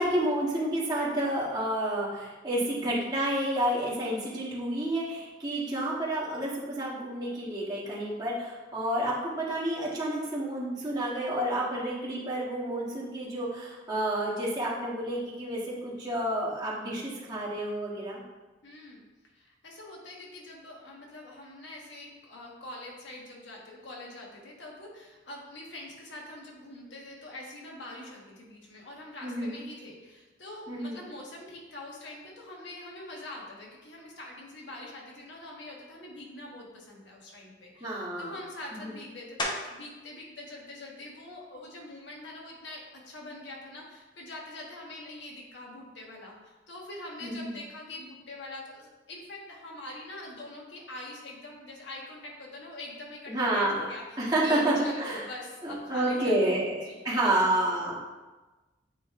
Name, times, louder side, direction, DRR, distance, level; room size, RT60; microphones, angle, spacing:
voice 1, 0.0-18.2 29.2-29.6 30.7-31.0 37.8-38.3 38.8-38.9 47.2-47.5 53.3-53.9 54.2-55.3 55.6-58.1, right 1 dB, 20° right, -7 dB, 1.6 m, -30 dB
voice 2, 18.6-19.0 19.3-57.5, left 1 dB, 75° left, -2 dB, 1.4 m, -44 dB
sound 1, 39.4-40.0 40.5-45.0 45.5-50.7 50.9-56.6, left 1 dB, 25° left, 0.8 m, -45 dB
8.6 x 3.1 x 3.7 m, 1.2 s
head